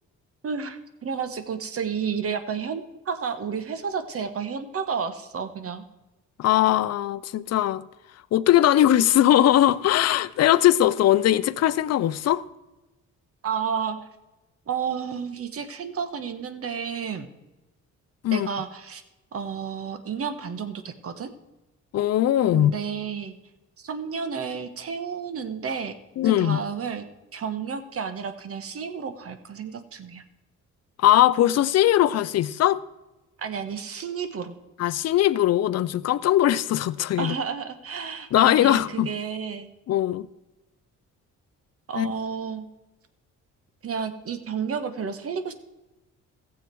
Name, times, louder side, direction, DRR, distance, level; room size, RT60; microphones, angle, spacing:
voice 1, 0.4-5.8 13.4-14.0 14.7-17.3 18.3-19.0 19.3-21.3 22.5-23.3 23.8-25.9 26.2-27.0 27.3-30.2 33.4-34.5 37.2-39.7 41.9-42.6 43.8-45.5, right 6 dB, 50° right, 1.3 m, -31 dB
voice 2, 6.4-7.8 8.3-12.4 18.2-18.5 21.9-22.7 26.2-26.6 31.0-32.8 34.8-37.3 38.3-39.1 39.9-40.3 42.0-42.1, left 12 dB, 55° left, 0.6 m, -20 dB
15.0 x 7.5 x 4.6 m
cardioid pair, 90°, 30 cm